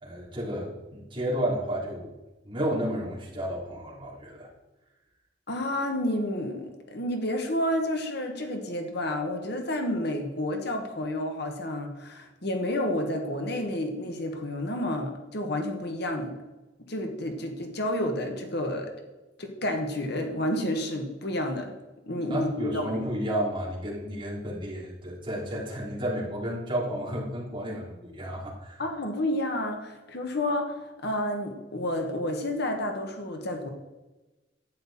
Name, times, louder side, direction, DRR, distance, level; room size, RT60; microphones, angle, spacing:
voice 1, 0.0-2.1 2.4-4.5 22.3-28.8, equal, 25° right, -5 dB, 3.6 m, -32 dB
voice 2, 5.5-16.3 16.9-18.9 19.4-21.7 22.1-23.1 28.8-33.7, left 1 dB, 60° left, 4 dB, 1.6 m, -30 dB
11.5 x 9.3 x 4.3 m, 1.1 s
head